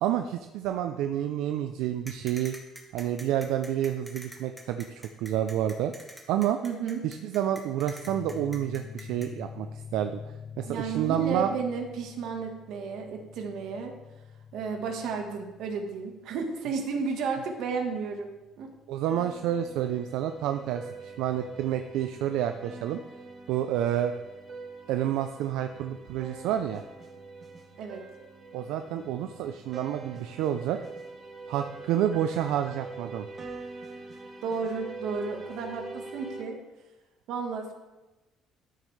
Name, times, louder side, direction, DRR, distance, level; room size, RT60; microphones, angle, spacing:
voice 1, 0.0-2.5 2.9-5.9 6.3-6.6 7.0-11.5 18.9-23.0 23.5-24.1 24.9-26.8 28.5-30.8 31.5-33.3, right 11 dB, 85° right, 7 dB, 0.4 m, -29 dB
sound 1, 2.1-9.3, equal, ahead, 1.2 m, -45 dB
voice 2, 6.6-7.0 10.6-13.9 14.5-18.3 18.6-18.7 27.8-28.0 34.4-36.6 37.3-37.7, right 5 dB, 65° right, 4 dB, 1.4 m, -33 dB
sound 2, 8.1-19.3, left 7 dB, 45° left, 0.8 m, -47 dB
sound 3, 19.1-36.4, right 3 dB, 30° right, 1.2 m, -44 dB
12.5 x 6.5 x 3.2 m, 1.1 s
cardioid pair, 150°, 0 cm